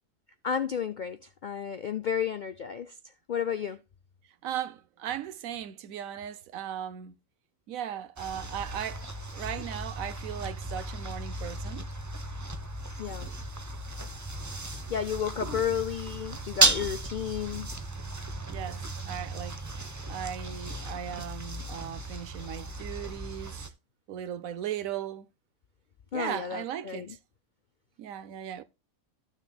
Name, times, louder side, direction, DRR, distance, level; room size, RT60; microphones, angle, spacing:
voice 1, 0.4-2.9 3.3-3.8 13.0-13.3 14.9-17.7 26.1-27.2, left 8 dB, 70° left, 0.4 m, -32 dB
voice 2, 4.4-7.2 7.7-11.9 18.5-19.6 20.1-23.7 24.1-25.3 26.1-27.2 28.0-28.6, right 10 dB, 85° right, 1.1 m, -37 dB
sound 1, 8.2-23.7, right 2 dB, 20° right, 0.5 m, -34 dB
13.5 x 6.5 x 2.2 m
omnidirectional pair, 1.4 m